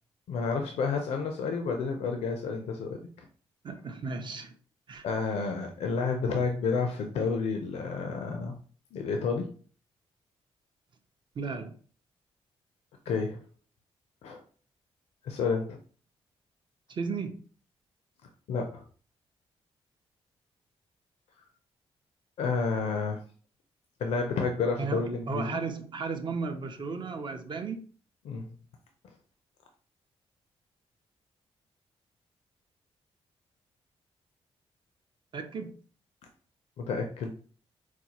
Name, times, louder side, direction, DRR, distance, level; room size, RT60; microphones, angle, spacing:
voice 1, 0.3-3.3 5.0-8.5 8.9-9.5 13.1-13.4 14.2-14.4 15.2-15.8 18.5-18.8 22.4-23.2 24.0-25.6 28.2-28.5 36.8-37.3, left 4 dB, 85° left, 0.5 m, -30 dB
voice 2, 3.6-4.6 4.9-5.1 11.4-11.8 16.9-17.4 24.8-27.9 35.3-35.8, right 4 dB, 45° right, 0.5 m, -35 dB
4.2 x 2.3 x 2.9 m
cardioid pair, 85°, 11 cm